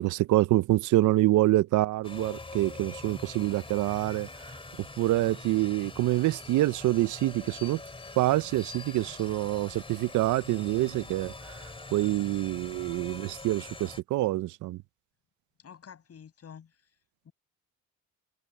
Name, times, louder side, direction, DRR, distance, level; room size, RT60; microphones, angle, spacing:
voice 1, 0.0-4.3 5.0-7.8 8.2-11.3 11.9-14.8, right 16 dB, 80° right, 0.6 m, -26 dB
sound 1, 2.0-14.0, left 3 dB, 20° left, 2.6 m, -44 dB
voice 2, 15.6-16.9 17.2-17.3, left 7 dB, 55° left, 7.6 m, -49 dB
cardioid pair, 90°, 30 cm